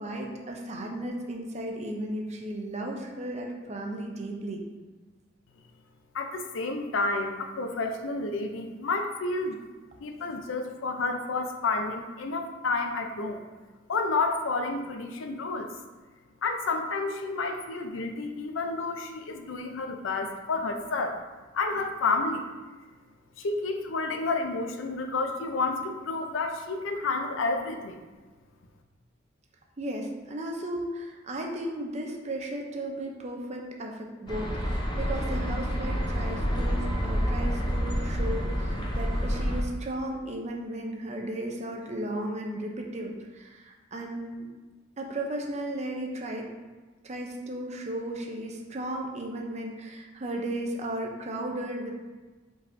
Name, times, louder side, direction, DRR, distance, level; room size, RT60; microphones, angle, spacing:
voice 1, 0.0-4.6 29.8-44.5 45.0-46.5 47.0-52.0, right 1 dB, 35° right, 1 dB, 0.6 m, -35 dB
voice 2, 6.1-9.6 10.0-13.5 13.9-15.7 16.4-21.2 21.5-22.5 23.4-28.0, left 3 dB, 80° left, 5 dB, 0.5 m, -30 dB
sound 1, 34.3-39.6, equal, 25° left, 0.6 m, -28 dB
5.1 x 3.9 x 2.6 m, 1.3 s
head